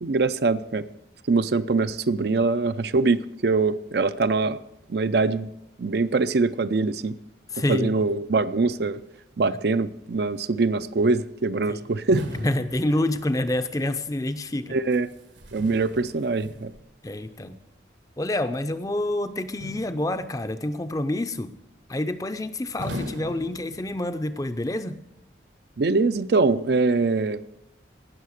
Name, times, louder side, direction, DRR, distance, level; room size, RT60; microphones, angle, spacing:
voice 1, 0.0-0.9 1.3-4.6 4.9-5.5 5.8-7.1 7.7-9.0 9.4-12.3 14.7-15.1 15.5-16.7 25.8-27.4, right 3 dB, 60° right, 12 dB, 0.5 m, -23 dB
voice 2, 7.5-7.9 11.7-11.8 12.4-14.8 17.0-17.6 18.2-21.5 21.9-25.0, left 1 dB, 20° left, 10 dB, 0.5 m, -27 dB
sound 1, 12.1-13.6 14.9-16.9 19.6-20.4 22.8-24.2, equal, 80° right, 1.5 m, -38 dB
17.5 x 6.6 x 6.5 m, 0.84 s
head